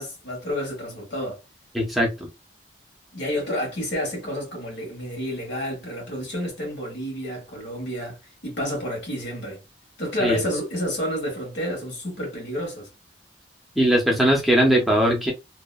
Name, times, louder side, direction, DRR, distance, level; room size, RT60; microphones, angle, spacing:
voice 1, 0.0-1.4 3.1-8.2 8.4-9.6 10.0-12.9, equal, 75° left, 1.3 m, -30 dB
voice 2, 1.7-2.3 10.2-10.4 13.8-15.3, equal, ahead, 0.5 m, -20 dB
2.7 x 2.1 x 2.2 m
head